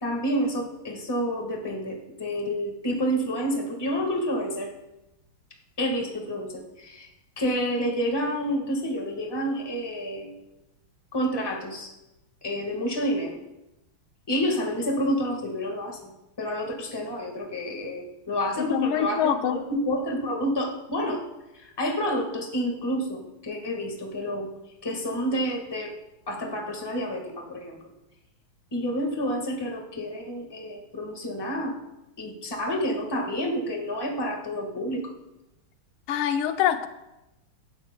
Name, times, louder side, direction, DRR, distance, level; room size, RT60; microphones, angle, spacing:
voice 1, 0.0-4.7 5.8-6.5 6.8-7.1 7.4-10.3 11.1-11.9 12.4-13.4 14.3-16.1 16.4-19.2 19.5-21.2 21.6-24.5 24.8-25.9 26.3-27.8 28.7-31.7 32.2-35.0, equal, 15° left, 1 dB, 1.3 m, -29 dB
voice 2, 18.6-19.6 36.1-36.9, left 9 dB, 85° left, 9 dB, 1.5 m, -25 dB
16.5 x 12.0 x 2.2 m, 0.95 s
omnidirectional pair, 2.3 m